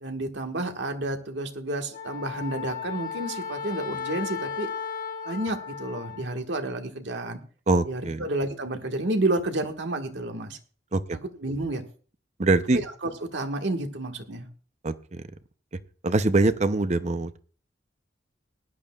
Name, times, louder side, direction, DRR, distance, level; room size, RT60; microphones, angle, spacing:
voice 1, 0.0-4.7 5.2-7.4 7.8-10.6 11.1-11.8 12.7-14.5, right 2 dB, 80° right, 4 dB, 1.6 m, -30 dB
Wind instrument woodwind instrument, 1.9-6.3, left 7 dB, 50° left, 1.3 m, -35 dB
voice 2, 7.7-8.2 10.9-11.2 12.4-12.8 14.8-15.3 16.0-17.4, right 2 dB, 40° right, 12 dB, 0.7 m, -23 dB
19.0 x 11.0 x 2.4 m, 0.40 s
head